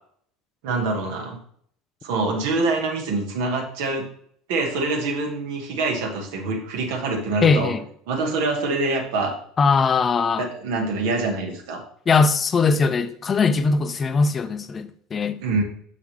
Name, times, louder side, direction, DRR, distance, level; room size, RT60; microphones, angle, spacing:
voice 1, 0.6-1.4 2.0-4.1 4.5-7.7 8.1-9.3 10.4-11.8 15.4-15.6, right 3 dB, 70° right, 1.5 m, -25 dB
voice 2, 7.4-7.8 9.6-10.5 12.1-15.4, left 4 dB, 30° left, 0.6 m, -20 dB
6.2 x 5.7 x 3.3 m
hypercardioid pair, 75°, 0 cm